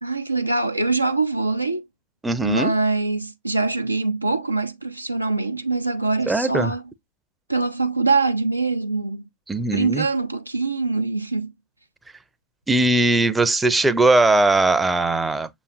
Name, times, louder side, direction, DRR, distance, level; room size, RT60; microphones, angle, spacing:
voice 1, 0.0-1.8 2.4-6.8 7.5-9.3 9.7-11.5, right 3 dB, 85° right, 0.5 m, -23 dB
voice 2, 2.2-2.8 6.3-6.7 9.5-10.1 12.7-15.5, right 2 dB, 10° right, 0.5 m, -19 dB
6.8 x 3.1 x 2.4 m
figure-of-eight pair, 90°, 0 cm